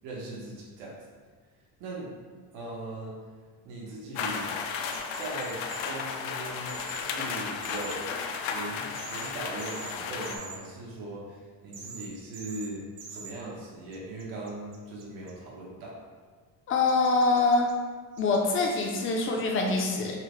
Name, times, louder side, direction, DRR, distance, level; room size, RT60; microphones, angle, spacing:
voice 1, 0.0-0.9 1.8-2.1 2.5-3.1 3.6-4.5 5.1-8.1 8.5-16.0, right 2 dB, 80° right, -4 dB, 1.0 m, -39 dB
sound 1, 4.2-10.4, left 6 dB, 85° left, 0.5 m, -34 dB
sound 2, 4.9-5.8 6.7-7.0 7.6-8.0 8.9-9.3 9.6-9.9 10.2-10.6 11.7-12.1 12.3-12.7 13.0-13.3 13.9-15.3 16.9-17.7 18.2-18.8, right 5 dB, 65° right, 0.7 m, -44 dB
voice 2, 16.7-17.7 18.2-20.2, left 3 dB, 30° left, 0 dB, 0.4 m, -24 dB
5.7 x 2.0 x 3.0 m, 1.5 s
cardioid pair, 155°, 45 cm